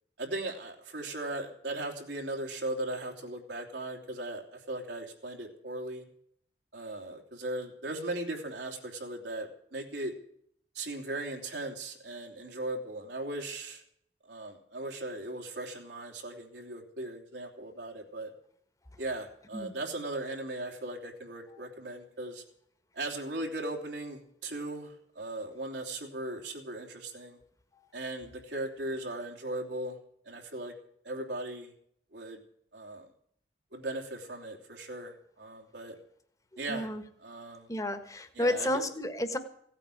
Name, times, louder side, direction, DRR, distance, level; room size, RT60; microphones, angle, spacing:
voice 1, 0.2-6.0 6.7-10.1 10.7-13.8 14.2-18.3 19.0-22.4 22.9-27.4 27.9-30.0 30.2-30.7 31.0-31.7 32.1-32.4 32.7-33.1 33.7-36.0 36.6-36.9 37.2-37.7 38.3-38.8, right 1 dB, 80° right, 1 dB, 3.3 m, -38 dB
voice 2, 36.5-37.0 37.7-39.4, left 1 dB, 20° left, 9 dB, 1.5 m, -32 dB
17.0 x 9.0 x 8.5 m, 0.66 s
head